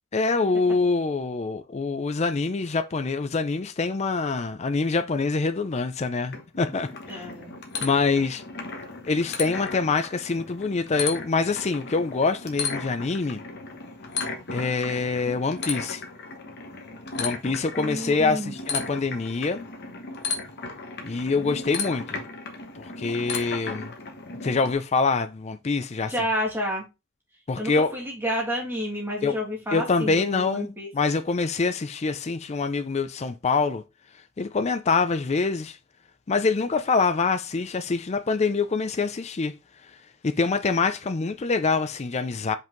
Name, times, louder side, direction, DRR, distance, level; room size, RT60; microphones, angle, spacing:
voice 1, 0.1-7.3 7.8-8.4 9.0-13.4 14.5-16.0 17.2-19.7 21.0-22.2 22.8-23.9 24.4-26.1 27.5-27.9 29.2-29.4 29.7-33.8 34.4-35.8 36.3-39.5 40.2-42.5, left 4 dB, 30° left, 0.4 m, -25 dB
sound 1, 6.3-24.7, left 4 dB, 50° left, 1.2 m, -35 dB
voice 2, 7.1-7.5 17.8-18.5 26.1-26.9 27.6-30.9, equal, 10° right, 2.4 m, -30 dB
5.4 x 5.4 x 3.9 m
head